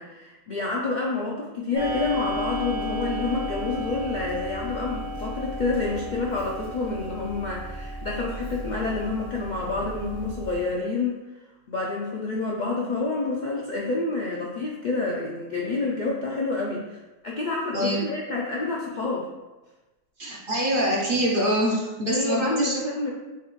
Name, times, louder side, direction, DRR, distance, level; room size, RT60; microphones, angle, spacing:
voice 1, 0.0-11.2 11.7-17.0 17.2-19.3 22.1-23.1, left 3 dB, 55° left, -3 dB, 0.5 m, -28 dB
Clock, 1.7-10.7, equal, 90° right, 2.0 m, -34 dB
voice 2, 20.2-22.8, right 1 dB, 50° right, -3 dB, 0.8 m, -24 dB
6.6 x 2.4 x 3.1 m, 1.1 s
omnidirectional pair, 1.4 m